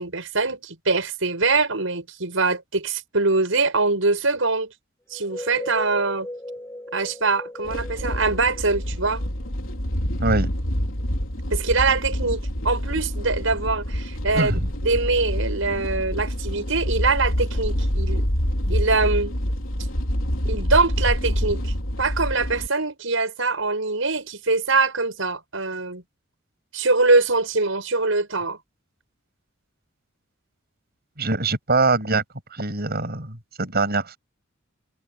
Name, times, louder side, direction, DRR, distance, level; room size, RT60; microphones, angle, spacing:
voice 1, 0.0-4.7 5.1-6.3 6.9-9.2 11.5-14.5 14.8-18.3 18.7-19.3 20.5-21.7 22.0-26.0 26.7-28.6, right 3 dB, 75° right, 6.8 m, -23 dB
sound 1, 5.1-9.7, left 1 dB, 10° left, 7.2 m, -37 dB
sound 2, 7.6-22.7, equal, 80° left, 3.9 m, -26 dB
voice 2, 14.3-14.7 31.2-32.2 32.5-34.2, right 3 dB, 50° right, 7.7 m, -23 dB
head